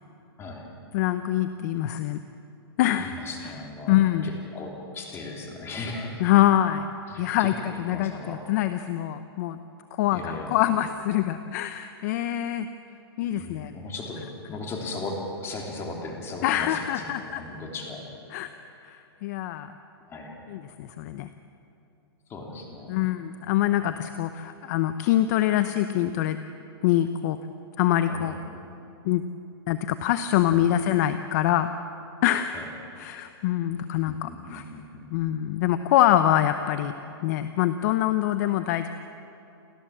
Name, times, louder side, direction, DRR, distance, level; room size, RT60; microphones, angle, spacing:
voice 1, 0.9-2.2 2.8-3.1 3.4-3.5 3.9-4.3 6.2-6.9 7.2-9.6 10.0-12.7 13.2-13.7 16.4-17.4 18.3-18.5 18.8-19.7 20.5-21.3 22.9-26.4 26.8-27.4 27.8-28.3 29.0-29.2 29.7-31.7 32.2-32.7 33.0-34.6 35.1-36.9 37.2-38.9, left 12 dB, 40° left, 10 dB, 0.8 m, -24 dB
voice 2, 3.0-4.0 4.2-6.3 7.1-8.4 10.1-10.6 13.4-18.1 20.0-20.4 22.3-23.0 28.1-28.6 32.5-32.6 34.0-35.3, left 2 dB, 20° left, 1 dB, 3.3 m, -37 dB
29.0 x 14.0 x 7.5 m, 2.8 s
hypercardioid pair, 155°, 14 cm